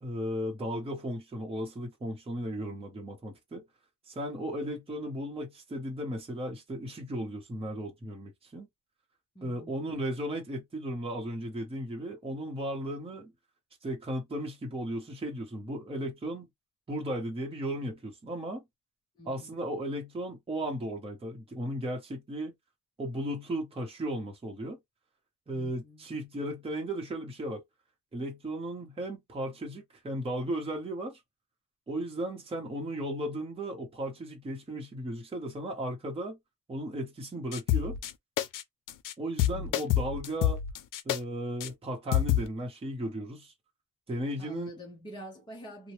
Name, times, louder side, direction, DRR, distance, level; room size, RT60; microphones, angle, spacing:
voice 1, 0.0-3.6 4.1-8.7 9.4-13.3 13.8-16.5 16.9-18.6 19.2-22.5 23.0-24.8 25.5-27.6 28.1-31.2 31.9-36.4 36.7-38.0 39.2-40.6 41.0-43.5 44.1-44.8, right 1 dB, 20° right, 0.8 m, -35 dB
voice 2, 9.3-9.7 19.2-19.5 25.5-26.0 39.5-39.8 44.4-45.9, equal, 15° left, 0.7 m, -47 dB
sound 1, 37.5-38.1 38.4-38.6 38.9-39.1 39.4-41.2 41.6-41.7 42.1-42.5, left 11 dB, 90° left, 0.5 m, -27 dB
2.8 x 2.1 x 3.0 m
wide cardioid pair, 155°, 31 cm